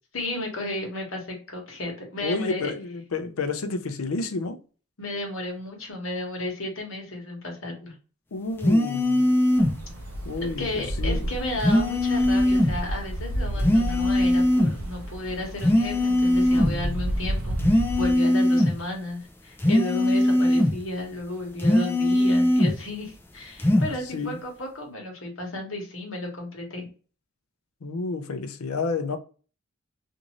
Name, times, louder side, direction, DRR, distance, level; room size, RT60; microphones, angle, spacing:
voice 1, 0.1-2.7 5.0-7.9 10.6-26.8, left 1 dB, 70° left, 1.1 m, -33 dB
voice 2, 2.2-4.6 8.3-9.3 10.2-11.3 16.5-17.1 23.8-24.4 27.8-29.2, left 3 dB, 85° left, 0.5 m, -30 dB
sound 1, 8.6-9.8 11.6-12.8 13.6-14.8 15.6-16.8 17.6-18.8 19.6-20.8 21.6-22.8 23.6-23.9, left 1 dB, 10° left, 0.3 m, -20 dB
sound 2, 9.5-18.1, right 1 dB, 80° right, 0.6 m, -32 dB
2.6 x 2.5 x 2.9 m
head